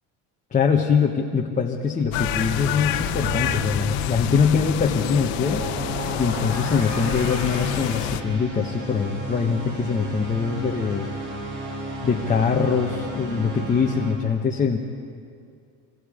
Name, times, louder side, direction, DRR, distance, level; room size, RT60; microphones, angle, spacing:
voice 1, 0.5-5.7 6.2-11.1 12.0-14.8, left 5 dB, 20° left, -2 dB, 1.1 m, -23 dB
sound 1, 2.0-14.2, right 1 dB, 45° right, 5.5 m, -33 dB
sound 2, 2.1-8.2, left 12 dB, 90° left, 1.3 m, -27 dB
27.5 x 24.5 x 5.1 m, 2.3 s
cardioid pair, 150°, 44 cm